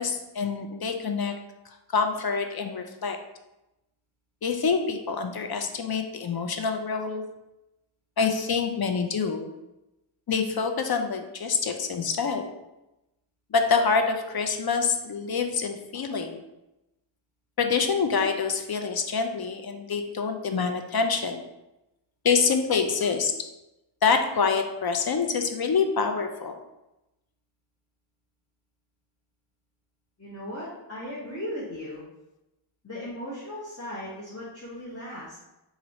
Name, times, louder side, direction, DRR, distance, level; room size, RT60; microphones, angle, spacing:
voice 1, 0.0-1.3 1.9-3.2 4.4-7.2 8.2-9.5 10.3-12.4 13.5-16.4 17.6-21.4 22.2-23.3 24.0-26.5, left 5 dB, 55° left, 5 dB, 0.5 m, -26 dB
voice 2, 30.2-32.0 32.8-35.4, left 1 dB, 35° left, -7 dB, 0.9 m, -37 dB
3.0 x 2.6 x 4.0 m, 0.95 s
wide cardioid pair, 70°, 45 cm